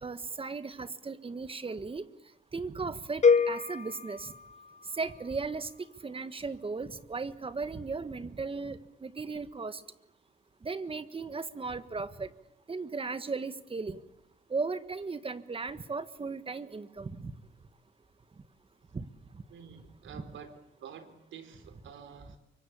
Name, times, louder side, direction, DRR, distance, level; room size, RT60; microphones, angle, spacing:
voice 1, 0.0-2.1 2.5-4.3 4.9-5.7 6.0-9.8 10.6-12.3 12.7-14.0 14.5-17.3 18.9-19.1 20.1-20.2, right 4 dB, 30° right, 13 dB, 1.6 m, -36 dB
sound 1, 3.2-5.3, left 5 dB, 35° left, 1.1 m, -27 dB
voice 2, 19.5-20.5 20.8-22.4, right 7 dB, 75° right, 9 dB, 4.0 m, -48 dB
24.5 x 23.0 x 8.7 m, 0.83 s
cardioid pair, 90°, 20 cm